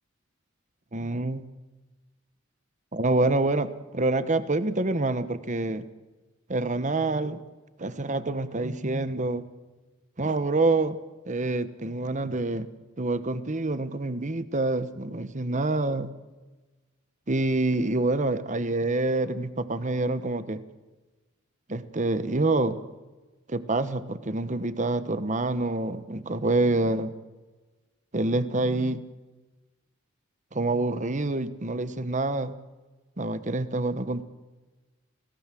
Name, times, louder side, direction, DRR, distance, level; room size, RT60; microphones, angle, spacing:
voice 1, 0.9-1.4 2.9-5.9 6.5-7.4 7.8-9.4 10.2-11.0 11.3-12.7 13.0-16.1 17.3-20.6 21.7-22.8 23.5-27.1 28.1-29.0 30.5-32.5 33.2-34.2, right 2 dB, 35° right, 13 dB, 1.2 m, -27 dB
28.0 x 17.5 x 7.7 m, 1.2 s
head